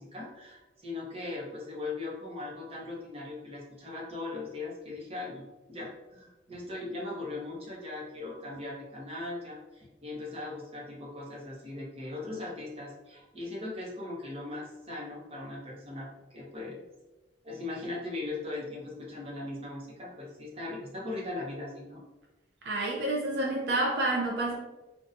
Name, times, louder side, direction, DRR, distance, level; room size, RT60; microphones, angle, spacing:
voice 1, 0.0-16.8 17.4-22.0, left 2 dB, 35° right, -4 dB, 0.8 m, -39 dB
voice 2, 22.6-24.6, right 2 dB, 65° right, -3 dB, 0.5 m, -29 dB
4.0 x 2.3 x 2.6 m, 1.1 s
head